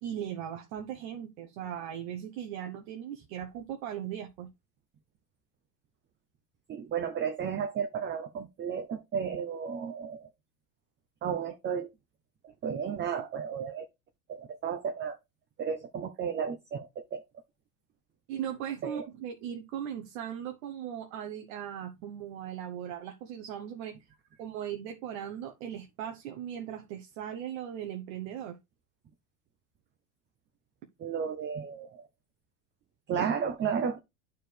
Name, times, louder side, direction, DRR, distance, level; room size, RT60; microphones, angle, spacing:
voice 1, 0.0-4.5 18.3-23.9 24.4-28.6 33.2-33.3 33.7-33.8, right 9 dB, 60° right, 1.1 m, -38 dB
voice 2, 6.7-10.3 11.2-11.9 12.6-13.8 14.3-15.2 15.6-17.2 18.8-19.1 31.0-32.0 33.1-34.0, right 7 dB, 25° right, 0.6 m, -33 dB
10.0 x 4.7 x 3.3 m
supercardioid pair, 120°, 45 cm